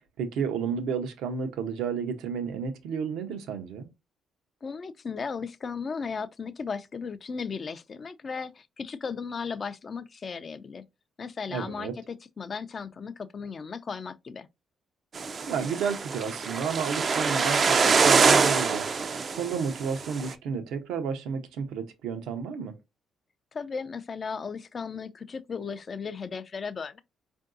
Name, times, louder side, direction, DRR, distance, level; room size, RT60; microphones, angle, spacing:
voice 1, 0.0-3.9 11.5-11.9 15.5-22.7, right 6 dB, 85° right, 0.7 m, -32 dB
voice 2, 4.6-10.8 11.2-14.5 23.5-27.0, left 5 dB, 40° left, 0.4 m, -36 dB
sound 1, 15.1-20.3, right 5 dB, 45° right, 0.4 m, -24 dB
4.5 x 2.6 x 2.5 m
cardioid pair, 90°, 0 cm